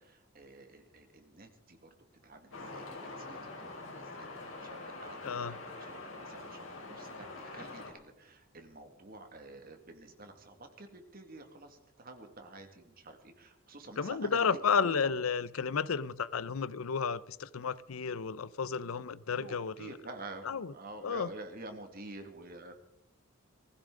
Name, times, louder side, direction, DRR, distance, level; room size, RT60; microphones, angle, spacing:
voice 1, 0.0-1.9 2.2-15.1 19.4-22.7, right 2 dB, 45° right, 2.0 m, -49 dB
sound 1, 2.5-7.9, left 2 dB, 70° left, 4.0 m, -45 dB
voice 2, 5.2-5.6 14.0-19.9 20.4-20.7 21.0-21.3, left 6 dB, 85° left, 0.6 m, -32 dB
19.5 x 15.5 x 3.8 m
head